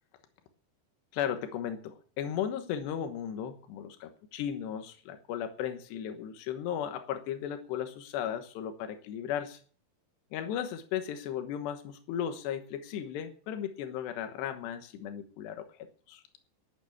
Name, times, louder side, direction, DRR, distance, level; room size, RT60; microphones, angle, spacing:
voice 1, 1.1-9.6 10.3-16.2, left 9 dB, 85° left, 7 dB, 3.4 m, -36 dB
12.5 x 8.9 x 8.5 m, 0.44 s
omnidirectional pair, 4.7 m